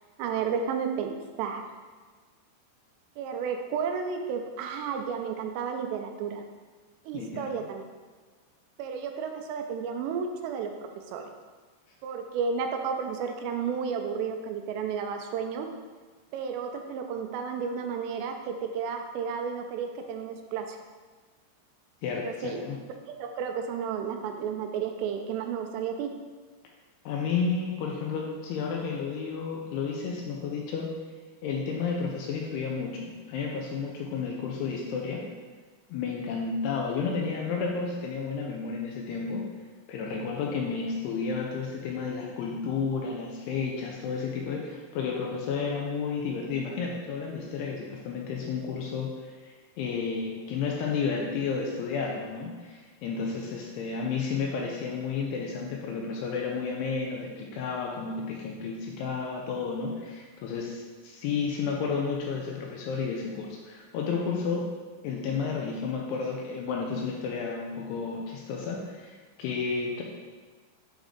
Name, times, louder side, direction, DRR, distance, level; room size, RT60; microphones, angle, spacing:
voice 1, 0.2-1.6 3.2-6.4 7.1-7.8 8.8-11.2 12.0-15.7 16.3-20.8 22.1-22.6 23.1-26.1, right 6 dB, 85° right, 4 dB, 2.7 m, -32 dB
voice 2, 22.0-22.8 27.1-30.9 31.4-35.3 35.9-39.4 39.9-64.7 65.0-70.0, left 5 dB, 80° left, -1 dB, 2.5 m, -32 dB
7.4 x 3.5 x 3.6 m, 1.4 s
omnidirectional pair, 5.0 m